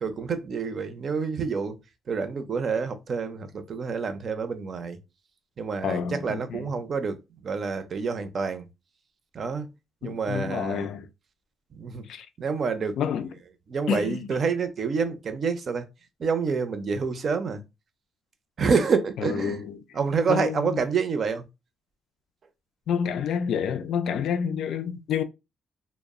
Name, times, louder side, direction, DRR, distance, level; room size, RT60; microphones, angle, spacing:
voice 1, 0.0-1.8 2.1-5.0 5.6-8.7 9.3-9.7 10.0-10.9 11.7-12.0 12.4-13.0 13.7-15.9 16.2-17.6 18.6-19.6 19.9-21.4, right 5 dB, 50° right, 0.5 m, -28 dB
voice 2, 5.8-6.7 10.0-11.1 12.1-12.3 13.0-13.3 13.9-14.3 19.2-19.8 20.3-20.8 22.9-25.2, left 7 dB, 75° left, 0.3 m, -29 dB
2.0 x 2.0 x 3.5 m
cardioid pair, 90°, 0 cm